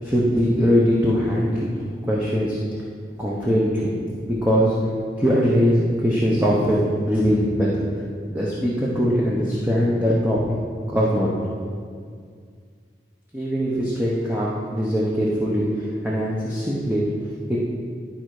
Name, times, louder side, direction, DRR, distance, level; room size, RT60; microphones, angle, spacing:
voice 1, 0.0-1.7 2.0-2.6 3.2-3.9 4.2-4.7 5.2-7.8 8.3-10.6 10.9-11.3 13.3-17.0 17.5-17.8, equal, 10° right, -6 dB, 0.9 m, -21 dB
11.5 x 4.4 x 4.8 m, 2.1 s
head